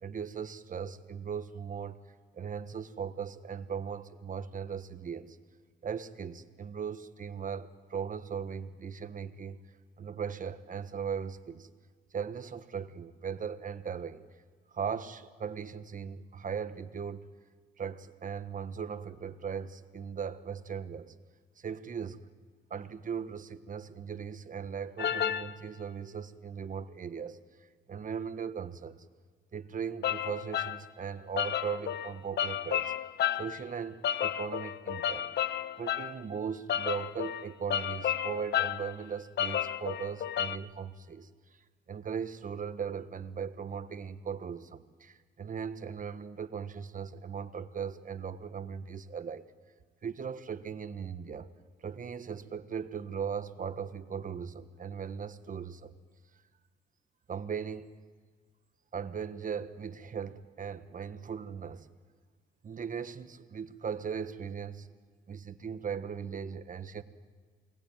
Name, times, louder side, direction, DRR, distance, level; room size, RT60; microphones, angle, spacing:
voice 1, 0.0-5.4 5.8-9.6 10.0-11.7 12.1-14.3 14.7-17.3 17.8-21.1 21.6-22.3 22.7-27.4 27.9-29.0 29.5-32.9 33.4-35.3 35.7-41.3 41.9-49.5 50.0-51.5 51.8-55.9 57.3-57.9 58.9-61.9 62.6-64.9 65.3-67.0, right 7 dB, 40° right, 11 dB, 1.4 m, -38 dB
sound 1, 25.0-25.5 30.0-30.8 31.4-33.6 34.0-36.1 36.7-38.9 39.4-40.6, left 10 dB, 60° left, 0.8 m, -32 dB
28.5 x 19.5 x 9.1 m, 1.5 s
cardioid pair, 90°, 20 cm